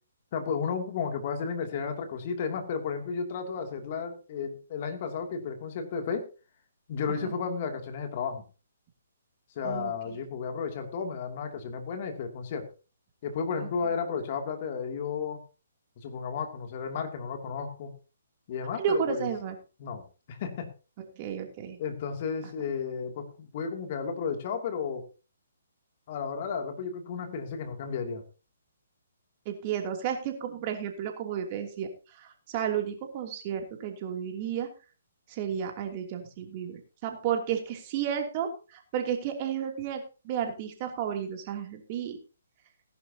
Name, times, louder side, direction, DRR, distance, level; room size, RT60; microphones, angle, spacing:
voice 1, 0.3-6.3 6.9-8.4 9.6-12.7 13.2-15.4 16.0-17.9 18.5-19.3 19.8-20.7 21.8-25.1 26.1-28.2, left 6 dB, 40° left, 5 dB, 2.7 m, -33 dB
voice 2, 18.8-19.5 21.2-21.8 29.4-31.9 32.2-34.7 35.3-42.2, right 8 dB, 35° right, 3 dB, 2.9 m, -32 dB
18.5 x 11.0 x 2.9 m, 0.33 s
figure-of-eight pair, 135°, 0 cm